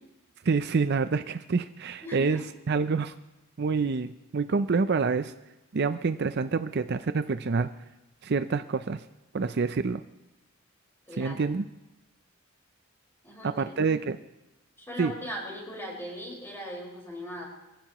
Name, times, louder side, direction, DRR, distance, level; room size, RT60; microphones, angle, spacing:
voice 1, 0.4-3.1 3.6-5.3 5.7-7.7 8.2-9.0 9.3-10.0 11.2-11.6 13.4-14.2 15.0-15.1, right 4 dB, 50° right, 11 dB, 0.5 m, -27 dB
voice 2, 2.0-2.4 11.1-11.4 13.2-13.6 14.8-17.5, equal, 10° left, -3 dB, 4.9 m, -39 dB
24.0 x 15.5 x 3.0 m, 0.99 s
head